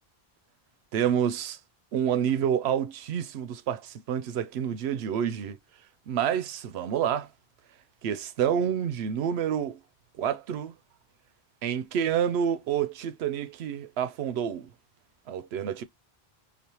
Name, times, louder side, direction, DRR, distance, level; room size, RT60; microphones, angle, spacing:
voice 1, 0.9-1.6 1.9-5.6 6.1-7.3 8.0-9.8 10.2-10.7 11.6-14.7 15.3-15.8, right 9 dB, 90° right, 0.8 m, -28 dB
5.0 x 2.4 x 2.9 m
omnidirectional pair, 1.0 m